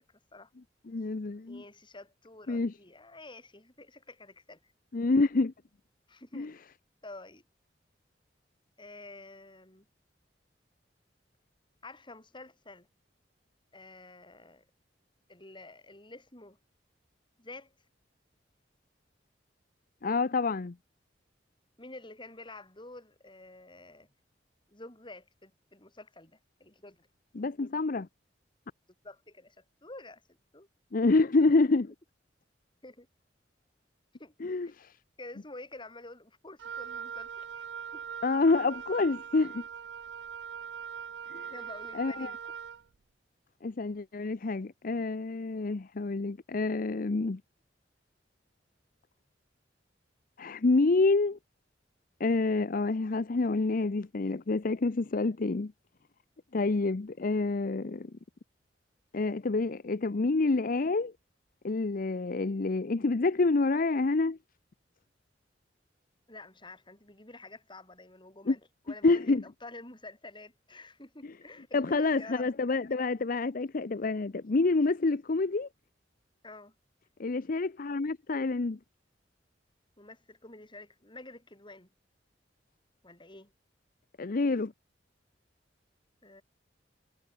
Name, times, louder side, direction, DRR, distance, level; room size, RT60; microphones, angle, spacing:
voice 1, 0.1-0.5 1.5-4.7 6.1-6.6 7.0-7.4 8.8-9.9 11.8-12.9 13.7-14.7 15.3-16.6 17.4-17.7 21.8-24.1 24.7-27.1 29.0-30.7 32.8-33.1 34.2-34.3 34.6-34.7 35.2-37.6 37.9-38.0 41.5-42.4 66.3-68.6 68.9-72.5 72.9-73.3 76.4-76.7 80.0-81.9 83.0-83.5 86.2-86.4, left 2 dB, 25° left, 7.7 m, -49 dB
voice 2, 0.9-1.6 2.5-2.7 4.9-5.5 6.3-6.5 20.0-20.7 27.3-28.1 30.9-31.9 34.4-35.0 38.2-39.6 41.3-41.5 41.9-42.3 43.6-47.4 50.4-51.4 52.2-55.7 56.5-58.1 59.1-61.1 61.6-64.4 68.5-68.6 69.0-69.4 71.7-75.7 77.2-78.8 84.2-84.7, left 3 dB, 50° left, 0.6 m, -27 dB
Wind instrument woodwind instrument, 36.6-42.8, right 7 dB, 75° right, 0.5 m, -41 dB
head